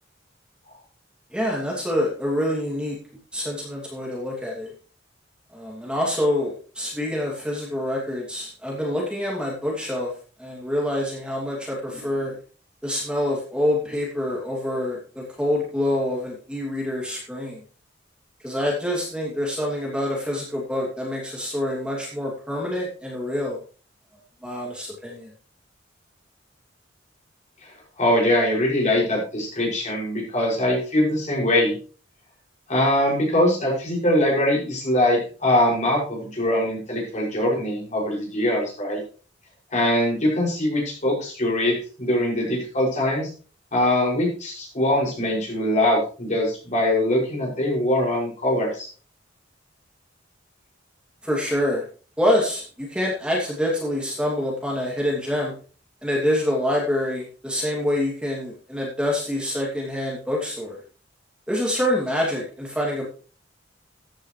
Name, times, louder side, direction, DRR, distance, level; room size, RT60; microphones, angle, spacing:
voice 1, 1.3-3.0 3.3-4.7 5.5-10.1 10.4-12.4 12.8-17.6 18.4-23.6 24.4-25.3 51.2-51.8 52.2-55.5 56.0-60.8 61.5-63.0, left 1 dB, 5° right, -3 dB, 2.7 m, -26 dB
voice 2, 28.0-31.8 32.7-39.0 39.7-43.3 43.7-48.9, left 1 dB, 40° left, -2 dB, 6.3 m, -22 dB
14.5 x 10.0 x 3.3 m, 0.39 s
head